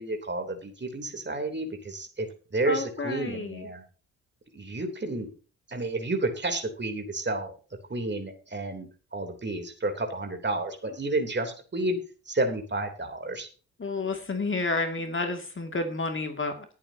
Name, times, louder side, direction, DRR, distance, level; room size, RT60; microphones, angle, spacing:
voice 1, 0.0-3.8 4.5-5.3 5.7-7.5 7.9-12.0 12.3-13.5, right 2 dB, 25° right, 4 dB, 3.4 m, -31 dB
voice 2, 2.7-3.7 13.8-16.7, left 3 dB, 30° left, 5 dB, 2.5 m, -30 dB
20.0 x 8.7 x 2.9 m, 0.37 s
figure-of-eight pair, 45°, 41 cm